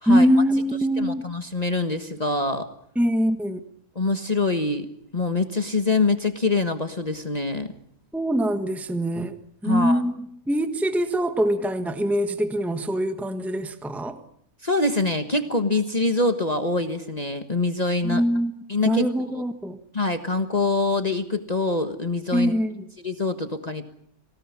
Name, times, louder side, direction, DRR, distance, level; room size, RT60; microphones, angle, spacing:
voice 1, 0.1-1.3 2.9-3.6 8.1-9.4 9.6-10.2 10.5-14.2 18.0-18.5 18.8-19.8 22.3-22.8, equal, ahead, 8 dB, 1.4 m, -23 dB
voice 2, 1.0-2.6 3.9-4.9 5.1-7.7 9.6-10.0 14.6-18.2 18.7-19.1 19.3-19.4 19.9-22.5 23.0-23.8, left 3 dB, 30° left, 7 dB, 1.5 m, -24 dB
26.0 x 18.0 x 9.9 m, 0.72 s
omnidirectional pair, 1.3 m